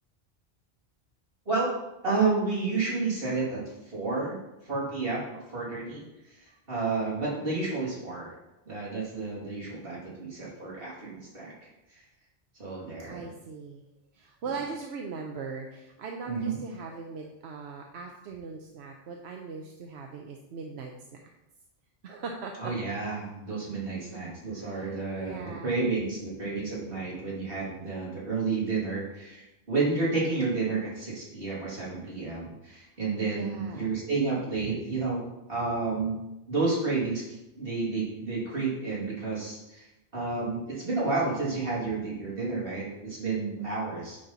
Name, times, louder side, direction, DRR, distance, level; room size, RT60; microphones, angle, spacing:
voice 1, 2.0-4.4 4.6-6.0 6.3-8.3 8.7-11.5 12.6-13.3 16.3-16.6 22.6-35.2 35.5-36.2 36.5-37.2 37.6-39.9 40.1-44.2, right 3 dB, 60° right, -6 dB, 2.9 m, -30 dB
voice 2, 13.1-13.8 14.1-21.2 22.0-22.7 24.5-25.9 33.3-34.0, right 4 dB, 85° right, 2 dB, 1.0 m, -40 dB
9.8 x 4.3 x 4.0 m, 0.93 s
omnidirectional pair, 1.1 m